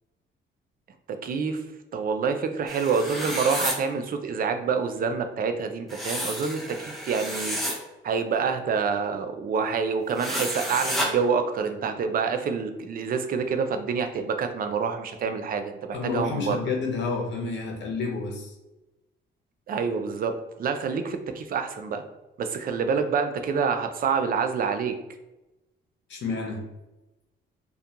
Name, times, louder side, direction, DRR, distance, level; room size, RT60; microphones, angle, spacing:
voice 1, 1.1-1.6 1.9-7.6 8.0-16.6 19.7-20.3 20.6-22.0 22.4-24.9, right 5 dB, 45° right, 7 dB, 0.4 m, -27 dB
sound 1, 2.7-3.8 5.9-7.8 10.2-11.1, equal, ahead, 0.6 m, -30 dB
voice 2, 15.9-18.5 26.1-26.6, left 4 dB, 65° left, 1 dB, 0.8 m, -29 dB
2.4 x 2.2 x 2.8 m, 1.0 s
cardioid pair, 90°, 20 cm